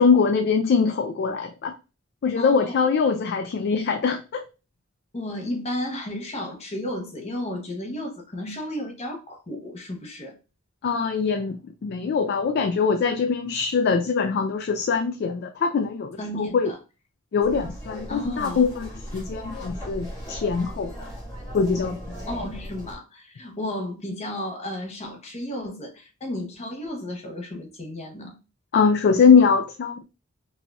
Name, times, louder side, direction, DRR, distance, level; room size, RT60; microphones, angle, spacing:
voice 1, 0.0-1.7 2.2-4.5 10.8-16.7 17.3-21.1 21.5-22.2 28.7-30.0, left 5 dB, 50° left, 0.3 m, -22 dB
voice 2, 2.4-2.9 5.1-10.4 16.2-16.8 18.1-18.7 22.3-28.4, left 1 dB, 30° left, 0.8 m, -33 dB
sound 1, 17.4-23.0, equal, 15° left, 1.4 m, -37 dB
4.2 x 2.5 x 2.3 m
head